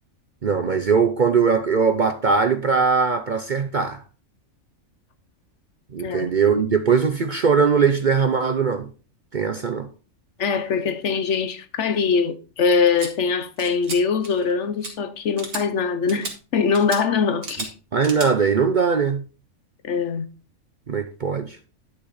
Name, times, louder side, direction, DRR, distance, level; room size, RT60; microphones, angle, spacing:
voice 1, 0.4-4.0 5.9-8.9 9.3-9.9 17.9-19.2 20.9-21.6, right 5 dB, 45° right, 0.6 m, -20 dB
voice 2, 6.0-6.3 10.4-17.7 19.8-20.3, left 5 dB, 60° left, 1.0 m, -22 dB
sound 1, 13.0-13.1 13.6-14.0 14.2-14.5 14.8-14.9 15.4-15.6 16.1-16.3 16.7-17.0 17.4-17.7 18.0-18.3, right 3 dB, 75° right, 2.4 m, -33 dB
11.0 x 6.1 x 4.0 m
omnidirectional pair, 1.5 m